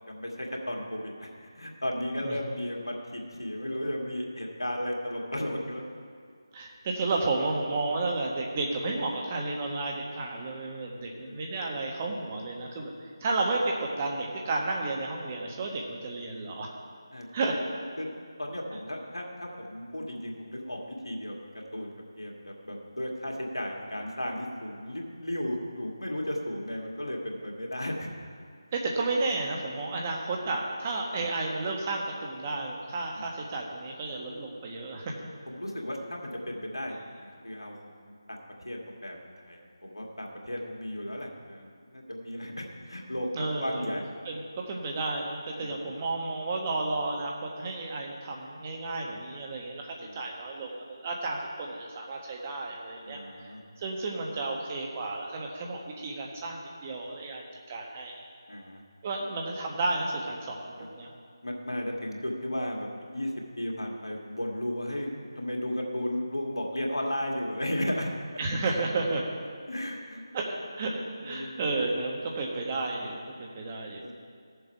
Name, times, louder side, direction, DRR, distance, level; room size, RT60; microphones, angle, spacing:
voice 1, 0.1-5.8 11.3-11.4 17.1-17.3 18.0-18.1 18.4-21.4 21.7-28.1 33.2-33.3 35.5-39.2 39.5-44.0 45.5-45.8 50.0-50.2 53.0-53.6 58.5-58.8 60.8-60.9 61.4-63.3 63.6-68.1 69.7-70.2 71.2-71.5 74.0-74.1, left 1 dB, 80° left, -1 dB, 2.1 m, -35 dB
voice 2, 6.5-12.9 13.2-16.7 17.3-17.5 28.7-35.1 43.3-43.9 44.2-44.4 44.7-53.5 53.8-58.2 59.0-61.2 68.4-69.2 70.3-74.0, right 3 dB, 25° right, 0 dB, 1.3 m, -32 dB
15.5 x 6.9 x 4.6 m, 2.1 s
figure-of-eight pair, 160°, 2 cm